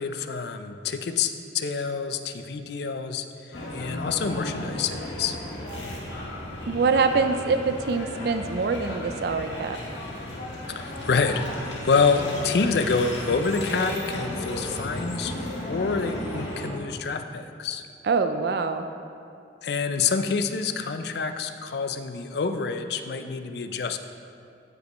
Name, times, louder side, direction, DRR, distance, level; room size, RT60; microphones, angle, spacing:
voice 1, 0.0-3.2 3.7-5.4 10.7-15.3 15.7-17.8 19.6-24.0, left 5 dB, 60° left, 8 dB, 0.4 m, -27 dB
sound 1, 3.5-16.7, left 1 dB, 85° left, 1.6 m, -34 dB
voice 2, 6.7-9.8 18.0-18.9, right 4 dB, 60° right, 8 dB, 0.4 m, -24 dB
14.5 x 5.3 x 3.0 m, 2.5 s
head